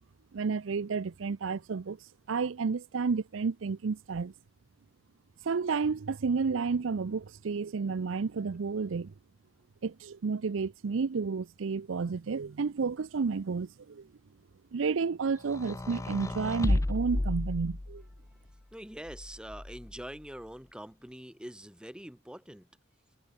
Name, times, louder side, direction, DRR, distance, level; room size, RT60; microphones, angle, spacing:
voice 1, 0.3-2.0 2.3-4.3 5.4-9.1 9.8-14.1 14.7-18.0, right 5 dB, 80° right, 0.5 m, -31 dB
sound 1, 15.4-18.2 19.1-20.0, left 1 dB, 15° left, 0.5 m, -32 dB
voice 2, 18.7-22.7, equal, 5° right, 1.7 m, -44 dB
head